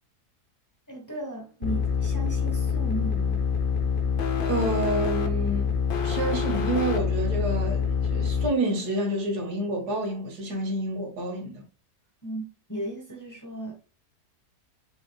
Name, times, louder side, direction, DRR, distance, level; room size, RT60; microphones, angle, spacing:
voice 1, 0.9-3.5 12.2-13.7, right 1 dB, 15° left, 1.0 m, -36 dB
sound 1, 1.6-8.5, left 6 dB, 65° left, 0.5 m, -26 dB
voice 2, 4.5-5.7 6.0-11.6, right 2 dB, 90° right, 1.9 m, -28 dB
4.9 x 4.0 x 2.2 m
omnidirectional pair, 1.7 m